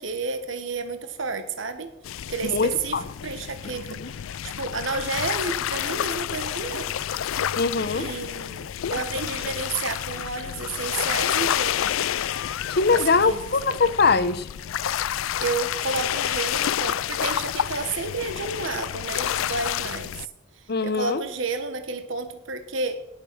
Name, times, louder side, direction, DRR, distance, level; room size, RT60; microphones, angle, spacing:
voice 1, 0.0-1.9 2.3-4.0 4.4-7.0 8.0-11.9 12.9-13.6 15.4-20.1 20.6-23.0, right 4 dB, 70° right, 1.3 m, -31 dB
sound 1, 2.0-20.3, left 10 dB, 90° left, 0.4 m, -29 dB
voice 2, 2.4-3.0 4.0-4.1 7.6-8.1 12.7-14.5 20.7-21.2, left 4 dB, 55° left, 0.8 m, -22 dB
18.0 x 6.9 x 6.2 m
head